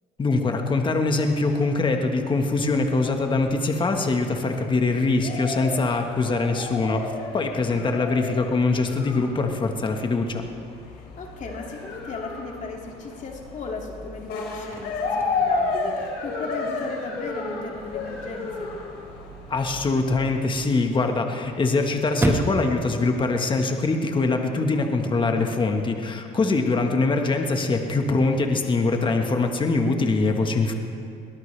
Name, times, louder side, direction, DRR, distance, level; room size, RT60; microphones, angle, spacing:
voice 1, 0.2-7.1 7.3-10.4 19.5-30.7, left 3 dB, 30° left, 4 dB, 1.5 m, -23 dB
sound 1, 1.5-20.5, left 3 dB, 80° left, 3.5 m, -33 dB
voice 2, 7.6-8.0 10.9-18.7 24.3-24.6 28.0-28.2, left 3 dB, 45° left, 0 dB, 2.4 m, -36 dB
Chirp tweet / Car / Slam, 14.4-24.4, right 1 dB, 15° right, 1.6 m, -35 dB
22.5 x 18.5 x 3.4 m, 2.4 s
cardioid pair, 110°, 17 cm